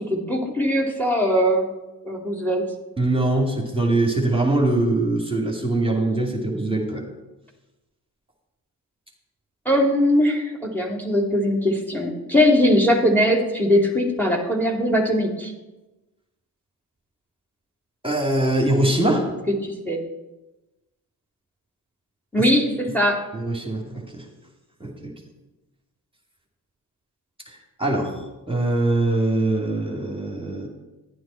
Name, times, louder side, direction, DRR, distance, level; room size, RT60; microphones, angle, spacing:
voice 1, 0.0-1.7 2.0-2.6 9.7-15.5 19.5-20.0 22.3-23.2, equal, 5° left, 0 dB, 2.4 m, -20 dB
voice 2, 3.0-7.0 18.0-19.3 23.3-23.8 24.1-24.2 24.8-25.1 27.8-30.7, right 2 dB, 10° right, 0 dB, 2.4 m, -22 dB
11.0 x 9.3 x 4.4 m, 1.1 s
supercardioid pair, 45°, 46 cm